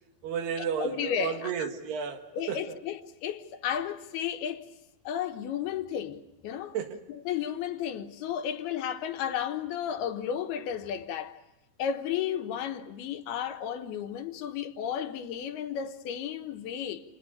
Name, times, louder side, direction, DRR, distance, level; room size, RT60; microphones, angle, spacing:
voice 1, 0.2-2.8 6.7-7.0, right 7 dB, 80° right, 3.9 m, -33 dB
voice 2, 0.8-1.7 2.3-4.6 5.1-6.8 7.1-11.3 11.8-17.0, left 9 dB, 80° left, 3.1 m, -33 dB
29.5 x 28.5 x 5.4 m
omnidirectional pair, 4.6 m